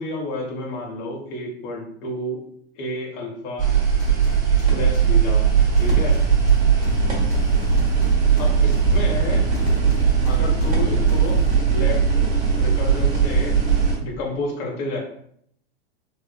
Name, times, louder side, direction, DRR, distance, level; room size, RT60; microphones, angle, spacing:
voice 1, 0.0-2.5 2.8-3.7 4.5-5.5 5.8-6.2 8.4-9.5 10.2-12.3 12.6-13.6 14.0-15.0, left 1 dB, 50° left, 0 dB, 1.1 m, -30 dB
sound 1, 3.6-14.0, right 6 dB, 25° right, 1.3 m, -19 dB
sound 2, 4.0-5.1 5.8-7.0 7.3-8.8 9.5-10.7 11.1-11.6, left 6 dB, 30° left, 0.7 m, -37 dB
3.5 x 2.4 x 2.2 m, 0.67 s
hypercardioid pair, 105°, 33 cm